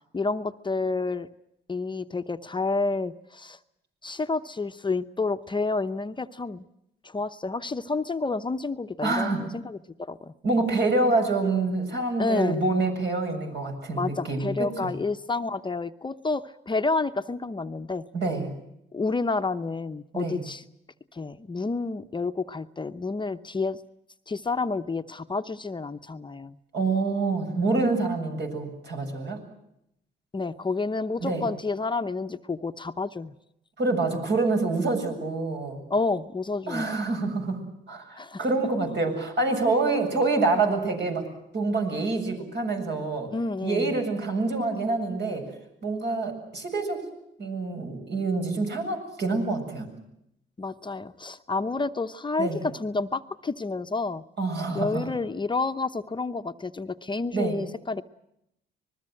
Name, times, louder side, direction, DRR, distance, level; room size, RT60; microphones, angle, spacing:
voice 1, 0.1-1.3 1.7-3.6 4.0-6.6 7.0-10.3 12.2-12.6 13.9-18.0 18.9-20.6 21.1-23.8 24.3-26.6 30.3-33.3 35.9-36.9 38.2-38.4 43.3-44.0 50.6-54.2 54.7-58.0, left 3 dB, 25° left, 8 dB, 0.8 m, -29 dB
voice 2, 9.0-9.4 10.4-14.9 18.1-18.5 20.1-20.4 26.7-29.4 31.2-31.4 33.8-35.8 36.7-37.6 37.9-41.3 41.5-43.3 43.6-45.5 45.8-47.0 47.4-49.9 52.4-52.6 54.4-55.1 57.3-57.6, right 3 dB, 60° right, 4 dB, 7.5 m, -26 dB
25.5 x 20.5 x 7.8 m, 0.80 s
cardioid pair, 90°, 20 cm